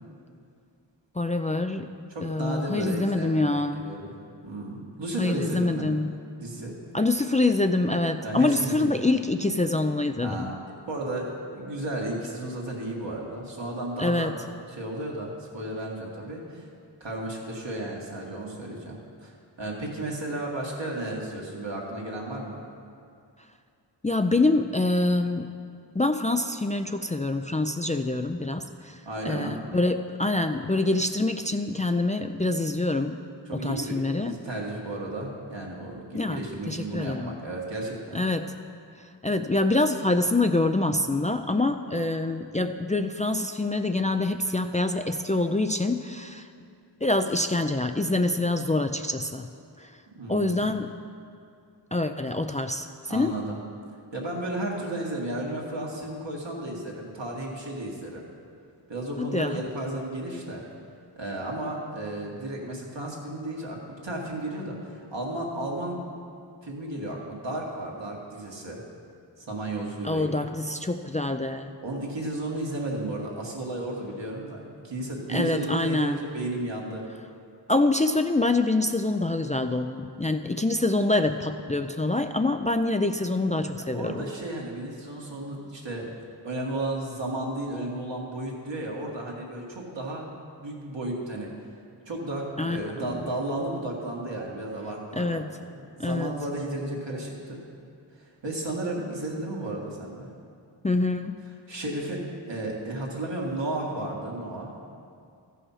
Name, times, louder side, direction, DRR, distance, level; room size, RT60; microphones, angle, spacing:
voice 1, 1.2-1.9 2.2-3.9 5.2-6.1 6.9-10.5 14.0-14.3 24.0-25.5 25.9-33.2 33.5-34.3 36.1-36.4 36.7-37.3 38.1-38.5 39.2-46.5 47.0-49.5 49.8-49.9 50.3-50.9 51.9-53.3 59.2-59.6 70.0-71.8 75.3-76.2 77.7-84.2 92.6-92.8 93.1-93.3 95.2-95.5 96.0-96.4 100.8-101.4, left 2 dB, 20° left, 6 dB, 0.4 m, -25 dB
voice 2, 2.1-4.1 4.4-5.9 6.4-6.8 8.2-9.0 10.2-10.5 10.9-14.3 14.7-16.7 17.0-22.6 29.1-29.7 33.5-38.2 50.1-50.7 53.1-53.6 54.1-58.2 58.9-60.6 61.2-66.0 66.6-68.8 69.4-70.3 71.8-77.1 83.7-86.1 86.4-91.5 92.1-97.6 98.1-100.3 101.7-104.7, right 1 dB, 75° right, -2 dB, 1.9 m, -33 dB
14.5 x 5.6 x 5.7 m, 2.4 s
wide cardioid pair, 40°, 44 cm